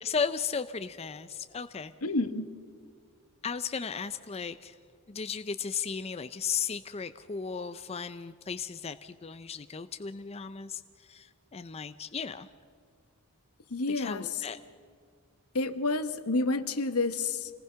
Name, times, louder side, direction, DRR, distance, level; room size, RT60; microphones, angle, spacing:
voice 1, 0.0-1.9 3.4-4.7 5.1-10.8 11.1-12.5 13.9-14.6, left 6 dB, 25° left, 11 dB, 0.5 m, -35 dB
voice 2, 2.0-2.5 13.7-14.4 15.5-17.5, left 3 dB, 75° left, 11 dB, 1.2 m, -29 dB
26.0 x 19.0 x 5.7 m, 2.1 s
head